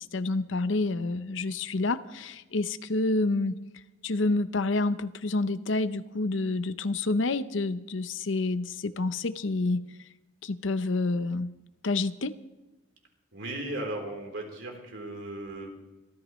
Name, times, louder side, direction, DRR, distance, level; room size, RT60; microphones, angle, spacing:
voice 1, 0.0-3.5 4.0-9.8 10.4-11.5 11.8-12.3, left 2 dB, 75° left, 12 dB, 0.7 m, -28 dB
voice 2, 13.3-15.8, right 1 dB, 70° right, 1 dB, 3.7 m, -36 dB
26.5 x 13.5 x 3.2 m, 1.1 s
head